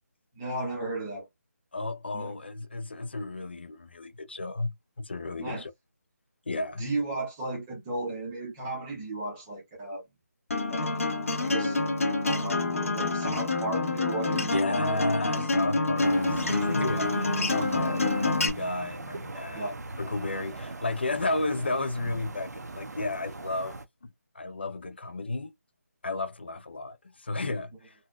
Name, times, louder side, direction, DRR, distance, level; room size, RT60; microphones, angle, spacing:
voice 1, 0.3-1.3 2.1-2.3 5.4-5.6 6.8-10.0 10.7-11.1 11.4-11.8 12.2-15.0 16.0-16.1 17.7-18.0 19.5-19.8, right 2 dB, 5° right, 0.7 m, -35 dB
voice 2, 1.7-5.7 6.5-6.9 14.4-18.0 18.2-19.7 20.0-25.5 26.0-27.9, left 2 dB, 40° left, 0.4 m, -33 dB
Acoustic guitar, 10.5-18.5, left 3 dB, 55° left, 1.4 m, -27 dB
sound 1, 16.0-23.9, right 3 dB, 75° right, 0.7 m, -40 dB
sound 2, 16.2-20.5, right 3 dB, 45° right, 0.9 m, -39 dB
4.0 x 2.2 x 2.4 m
figure-of-eight pair, 180°, 9 cm